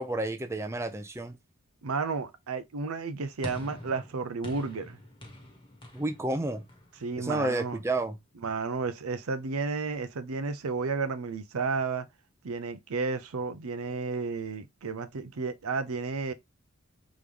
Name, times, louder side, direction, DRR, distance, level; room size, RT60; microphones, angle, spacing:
voice 1, 0.0-1.4 5.9-6.6 7.2-8.2, right 2 dB, 15° right, 0.5 m, -30 dB
voice 2, 1.8-5.0 7.0-7.8 8.4-12.1 12.4-16.3, right 4 dB, 85° right, 0.6 m, -32 dB
sound 1, 3.4-7.9, left 1 dB, 20° left, 1.1 m, -45 dB
3.7 x 3.1 x 3.3 m
head